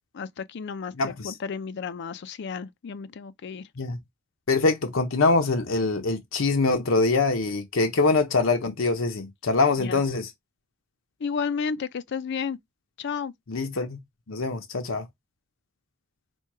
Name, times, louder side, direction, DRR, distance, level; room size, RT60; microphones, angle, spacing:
voice 1, 0.1-3.6 9.8-10.0 11.2-12.6 13.0-13.3, left 6 dB, 60° left, 0.4 m, -32 dB
voice 2, 1.0-1.3 3.8-4.0 4.5-10.3 13.5-14.0 14.3-15.1, left 3 dB, 80° left, 0.8 m, -24 dB
4.4 x 2.2 x 4.6 m
head